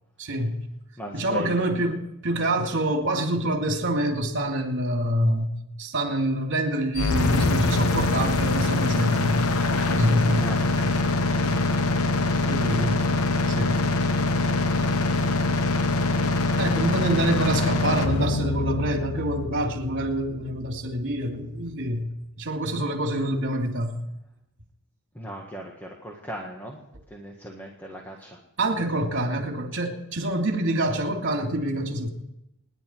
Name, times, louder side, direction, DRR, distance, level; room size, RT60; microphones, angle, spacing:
voice 1, 0.2-0.6 1.1-10.5 10.8-10.9 11.5-11.7 12.5-13.0 13.5-13.8 16.6-22.1 22.4-24.0 28.6-32.1, right 1 dB, 55° right, 2.9 m, -26 dB
voice 2, 1.0-1.7 10.4-10.8 25.1-28.4, equal, 10° left, 1.6 m, -40 dB
sound 1, 6.9-20.9, left 2 dB, 70° left, 1.0 m, -24 dB
27.0 x 11.0 x 4.6 m
head